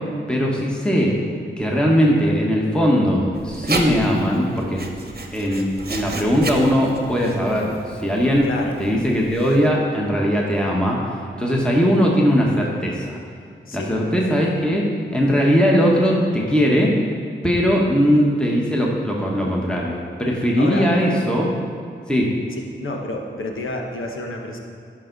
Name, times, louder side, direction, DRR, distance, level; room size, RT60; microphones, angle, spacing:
voice 1, 0.3-1.2 1.6-4.8 5.3-8.5 8.8-11.0 11.3-13.2 13.7-16.9 17.4-21.5 22.1-22.3, equal, 5° left, -3 dB, 1.4 m, -19 dB
Writing, 3.3-9.7, right 2 dB, 50° right, 1.0 m, -32 dB
voice 2, 8.4-8.8 13.7-14.0 20.6-20.9 22.8-24.6, left 2 dB, 75° left, 1 dB, 1.1 m, -29 dB
11.0 x 5.6 x 4.0 m, 2.3 s
cardioid pair, 45°, 21 cm